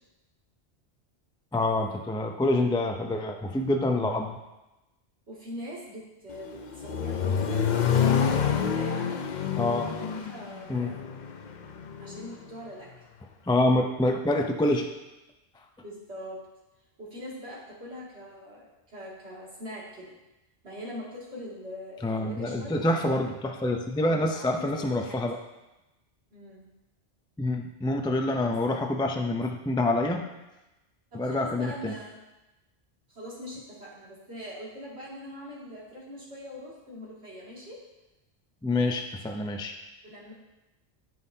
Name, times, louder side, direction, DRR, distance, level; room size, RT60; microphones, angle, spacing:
voice 1, 1.5-4.4 9.6-9.9 10.7-11.0 13.5-14.9 22.0-25.4 27.4-30.2 31.1-31.9 38.6-39.7, left 2 dB, 5° left, 3 dB, 0.3 m, -26 dB
voice 2, 5.3-7.7 8.2-9.1 9.8-11.0 12.0-12.9 15.8-16.4 17.0-20.2 20.6-22.9 24.1-25.3 26.3-26.6 28.7-28.8 31.1-32.2 33.1-37.8 40.0-40.3, equal, 75° right, -6 dB, 2.7 m, -42 dB
Accelerating revving vroom, 6.3-12.3, left 7 dB, 50° left, 0.6 m, -28 dB
14.0 x 5.5 x 2.7 m, 1.0 s
omnidirectional pair, 1.1 m